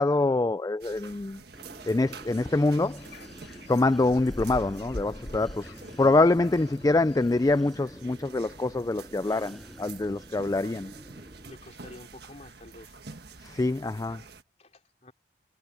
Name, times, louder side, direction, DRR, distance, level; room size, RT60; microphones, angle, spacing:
voice 1, 0.0-1.4 1.9-3.0 3.7-10.9 13.4-14.2, left 2 dB, 20° left, 0.3 m, -25 dB
sound 1, 0.8-14.4, right 4 dB, 60° right, 1.6 m, -48 dB
sound 2, 1.5-12.0, equal, ahead, 6.2 m, -48 dB
sound 3, 2.1-7.2, left 1 dB, 65° left, 1.9 m, -43 dB
voice 2, 11.5-13.0 14.6-15.1, left 1 dB, 35° left, 3.7 m, -49 dB
head